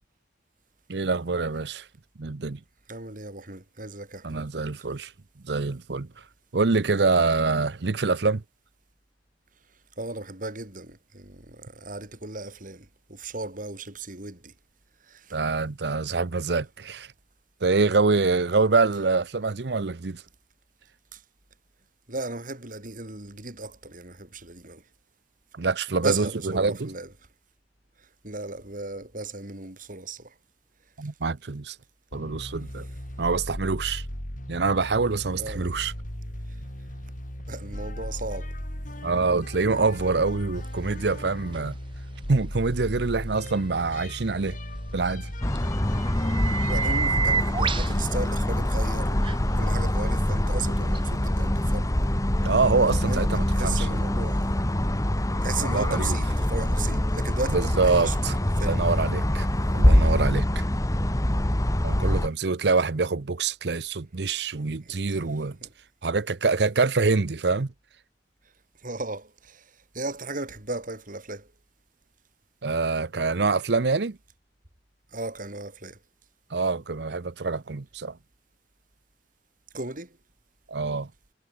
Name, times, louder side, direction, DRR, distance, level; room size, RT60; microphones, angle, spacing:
voice 1, 0.9-1.9 2.2-2.6 4.2-5.1 5.4-6.1 6.5-8.4 15.3-17.1 17.6-20.2 25.5-26.9 31.0-31.8 32.1-32.9 33.2-34.1 34.5-35.9 39.0-41.8 42.3-44.6 44.9-45.3 52.4-54.0 55.6-56.2 57.5-58.4 58.7-59.5 59.7-60.6 61.8-65.6 66.0-67.7 72.6-74.2 76.5-78.2 80.7-81.1, right 4 dB, 70° right, 0.8 m, -25 dB
voice 2, 2.9-4.7 10.0-14.5 15.1-15.4 21.1-21.2 22.1-24.8 26.0-27.1 28.0-30.3 35.4-35.7 37.5-38.5 45.9-46.1 46.7-49.3 49.6-51.9 52.9-54.5 55.4-58.8 64.8-65.2 65.6-65.7 68.8-71.5 75.1-76.0 79.7-80.2, right 3 dB, 50° right, 4.2 m, -36 dB
sound 1, 32.1-49.4, equal, 50° left, 4.8 m, -37 dB
sound 2, 41.5-41.6 45.6-45.7 46.1-47.9 49.2-49.4 51.0-51.1, right 6 dB, 30° right, 0.8 m, -28 dB
sound 3, 45.4-62.3, left 1 dB, 20° left, 1.3 m, -24 dB
head